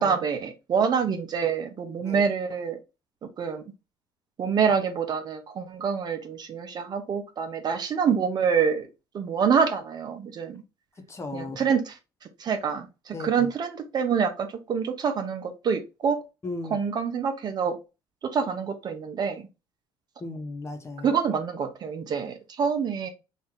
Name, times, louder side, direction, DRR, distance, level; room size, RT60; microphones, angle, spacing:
voice 1, 0.0-2.8 3.4-3.6 4.4-8.9 9.1-10.6 11.3-12.0 12.4-16.2 16.7-17.8 18.2-19.4 21.0-23.1, right 6 dB, 45° right, 0.9 m, -26 dB
voice 2, 11.0-11.6 13.1-13.5 16.4-16.8 20.2-21.1, left 3 dB, 30° left, 1.1 m, -36 dB
3.1 x 2.6 x 3.8 m
supercardioid pair, 80°, 10 cm